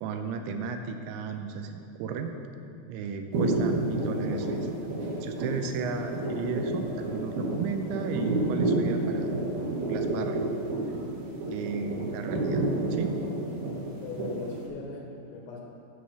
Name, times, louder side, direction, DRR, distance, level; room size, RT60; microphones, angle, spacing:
voice 1, 0.0-2.3 2.9-4.7 5.2-9.3 9.9-10.6 11.5-12.6 12.9-13.2, right 5 dB, 85° right, 6 dB, 2.9 m, -34 dB
sound 1, 3.3-14.7, right 2 dB, 60° right, 3.1 m, -30 dB
voice 2, 14.0-15.6, left 4 dB, 75° left, -1 dB, 3.3 m, -39 dB
14.5 x 5.3 x 5.9 m, 2.6 s
omnidirectional pair, 5.5 m